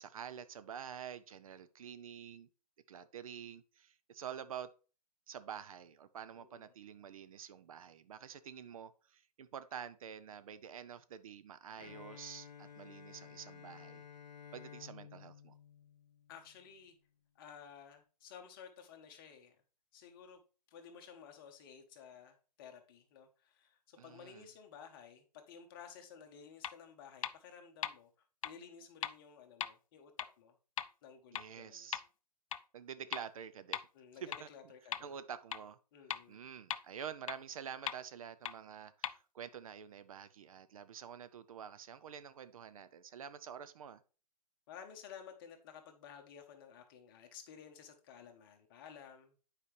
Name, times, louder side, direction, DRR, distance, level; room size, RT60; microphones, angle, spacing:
voice 1, 0.0-2.5 2.9-4.7 5.3-14.0 14.5-15.5 24.0-24.5 31.3-32.0 32.7-33.8 34.2-34.5 35.0-35.8 36.3-44.0, right 8 dB, 55° right, 0.5 m, -48 dB
voice 2, 6.3-6.7 16.3-16.9 17.3-19.6 19.9-20.4 20.7-30.1 30.4-30.6 31.0-31.9 33.9-35.2 35.9-36.5 44.7-49.4, left 7 dB, 35° left, 1.2 m, -54 dB
Bowed string instrument, 11.8-16.7, left 8 dB, 85° left, 0.8 m, -54 dB
sound 1, 26.6-26.7 27.2-27.3 27.8-27.9 28.4-28.5 29.0-29.1 29.6-29.7 30.2-30.3 30.8-30.9 31.4-31.5 31.9-32.0 32.5-32.6 33.1-33.2 33.7-33.8 34.3-34.4 34.9-35.0 35.5-35.6 36.1-36.2 36.7-36.8 37.3-37.4 37.9-38.0 38.5-38.6 39.0-39.1, left 9 dB, 55° left, 0.4 m, -37 dB
8.5 x 4.9 x 3.2 m
hypercardioid pair, 145°, 21 cm